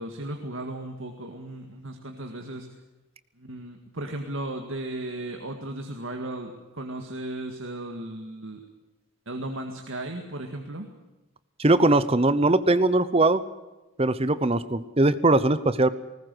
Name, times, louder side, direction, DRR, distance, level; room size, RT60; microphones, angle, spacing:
voice 1, 0.0-2.7 3.4-8.6 9.3-10.9, right 1 dB, 60° right, 4 dB, 2.0 m, -35 dB
voice 2, 11.6-13.4 14.0-15.9, right 2 dB, 25° right, 14 dB, 0.8 m, -21 dB
20.0 x 19.5 x 7.9 m, 1.1 s
head